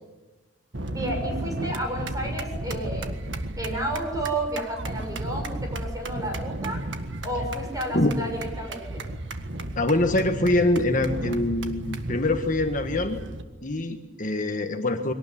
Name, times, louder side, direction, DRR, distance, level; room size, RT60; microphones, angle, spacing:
sound 1, 0.7-13.4, right 1 dB, 75° right, 1.7 m, -34 dB
voice 1, 0.9-3.1 3.6-6.8 7.2-9.0, right 1 dB, 20° right, 2 dB, 6.9 m, -31 dB
voice 2, 9.8-13.2 13.6-15.1, left 2 dB, 45° left, 5 dB, 1.5 m, -24 dB
23.0 x 18.5 x 10.0 m, 1.2 s
head